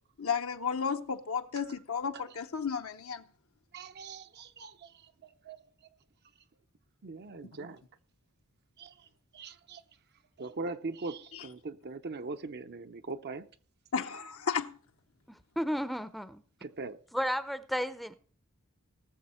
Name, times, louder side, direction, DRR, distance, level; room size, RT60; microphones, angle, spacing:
voice 1, 0.2-3.2 11.3-11.4 13.9-14.8, left 6 dB, 65° left, 0.8 m, -33 dB
voice 2, 3.7-5.6 7.0-7.8 8.8-9.1 9.3-9.8 10.4-13.5 16.6-17.0, right 3 dB, 50° right, 0.6 m, -41 dB
voice 3, 15.3-16.4 17.1-18.1, equal, ahead, 0.6 m, -33 dB
18.5 x 7.1 x 4.3 m
head